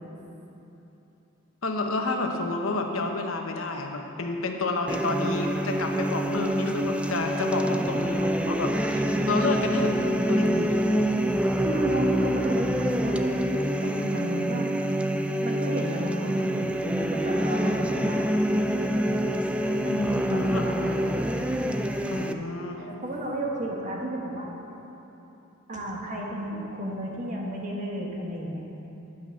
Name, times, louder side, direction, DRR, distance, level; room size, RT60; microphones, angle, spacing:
voice 1, 1.6-10.0 10.3-10.8 20.4-20.7 22.1-22.9, left 2 dB, 85° left, 3 dB, 1.0 m, -30 dB
sound 1, 4.9-22.3, equal, 5° right, 0.3 m, -26 dB
voice 2, 11.5-14.7 15.4-18.2 19.8-21.0 22.8-24.5 25.7-28.7, right 1 dB, 40° right, -2 dB, 1.6 m, -32 dB
10.5 x 6.0 x 7.4 m, 3.0 s
head